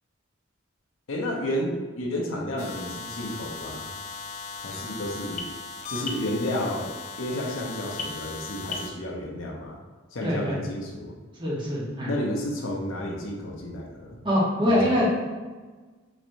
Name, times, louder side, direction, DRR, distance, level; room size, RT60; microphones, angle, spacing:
voice 1, 1.1-3.9 4.6-5.5 5.9-6.9 7.2-9.8 10.1-11.1 12.0-14.2 14.7-14.8, left 1 dB, 90° left, -1 dB, 0.8 m, -31 dB
sound 1, 2.6-8.9, left 4 dB, 40° left, 0.4 m, -37 dB
voice 2, 10.2-10.6 11.4-12.1 14.2-15.1, left 1 dB, 25° right, -6 dB, 1.0 m, -24 dB
4.1 x 3.2 x 2.6 m, 1.4 s
head